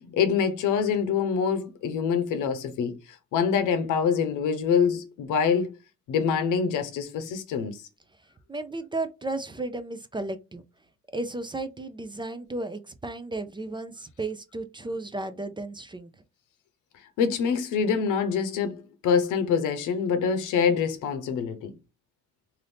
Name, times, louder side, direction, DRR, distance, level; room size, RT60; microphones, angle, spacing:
voice 1, 0.0-3.0 3.3-5.7 6.1-7.8 17.2-21.7, left 6 dB, 85° left, 0.7 m, -25 dB
voice 2, 8.5-10.6 11.1-16.1, right 2 dB, 15° right, 0.4 m, -34 dB
2.6 x 2.6 x 3.3 m
cardioid pair, 90°, 30 cm